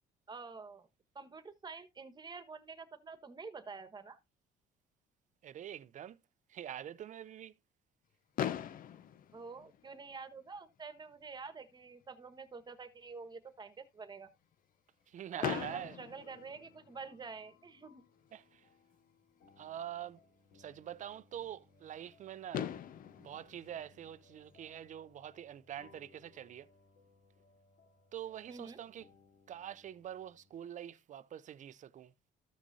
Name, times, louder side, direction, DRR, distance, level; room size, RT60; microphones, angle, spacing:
voice 1, 0.3-0.9 1.1-4.2 9.3-14.3 15.4-18.0 28.5-28.8, right 4 dB, 25° right, 1.4 m, -48 dB
voice 2, 5.4-6.2 6.5-7.5 15.1-16.0 18.3-18.6 19.6-20.2 20.5-22.7 23.2-26.7 28.1-29.0 29.5-32.1, right 10 dB, 45° right, 0.6 m, -45 dB
Fireworks, 8.4-10.4 11.2-11.3 11.5-11.7 12.0-12.1 15.4-17.2 18.9-19.0 22.1-22.2 22.5-24.8, left 10 dB, 55° left, 0.8 m, -41 dB
sound 1, 15.3-30.6, left 4 dB, 75° left, 3.4 m, -65 dB
14.0 x 6.1 x 2.7 m
cardioid pair, 110°, 17 cm